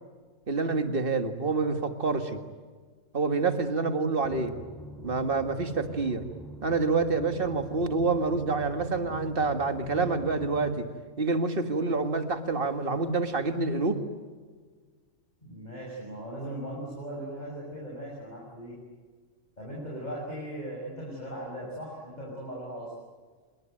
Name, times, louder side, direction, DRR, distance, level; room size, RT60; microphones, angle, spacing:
voice 1, 0.5-2.4 3.1-4.5 5.0-6.2 6.6-10.9 11.2-14.0, right 3 dB, 45° right, 7 dB, 2.1 m, -27 dB
sound 1, 4.2-10.7, right 1 dB, ahead, 5.6 m, -44 dB
voice 2, 15.4-18.8 19.6-22.9, right 1 dB, 35° left, -4 dB, 6.5 m, -38 dB
27.0 x 23.0 x 9.1 m, 1.5 s
omnidirectional pair, 1.3 m